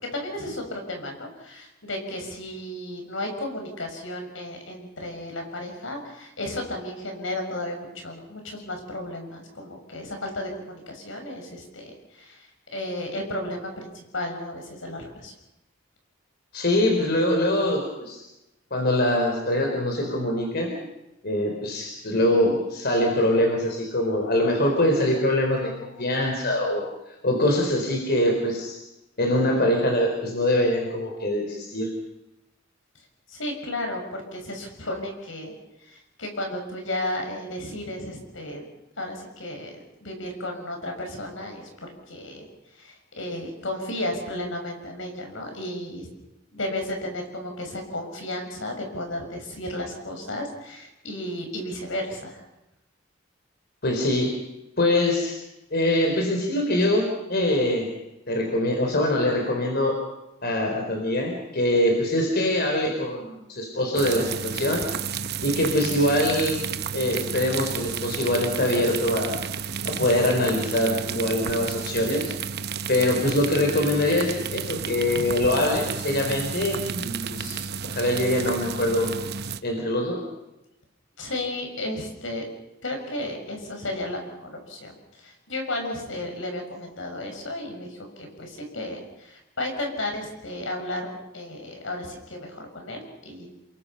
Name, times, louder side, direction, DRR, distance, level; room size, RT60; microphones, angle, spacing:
voice 1, 0.0-15.3 33.3-35.5 35.9-38.6 39.0-39.7 40.0-41.7 42.1-42.4 42.7-46.1 46.5-52.4 81.2-82.4 82.8-93.5, left 1 dB, 80° left, 3 dB, 6.5 m, -33 dB
voice 2, 16.5-18.2 18.7-20.8 21.2-26.8 27.2-28.8 29.2-31.9 53.8-54.4 54.8-55.4 55.7-57.9 58.3-60.0 60.4-64.9 65.4-66.6 66.9-69.4 69.8-72.4 72.9-79.1 79.6-80.2, left 1 dB, 55° left, 2 dB, 4.2 m, -23 dB
sound 1, 64.0-79.6, right 6 dB, 55° right, 0.9 m, -32 dB
29.0 x 22.5 x 5.8 m, 0.94 s
head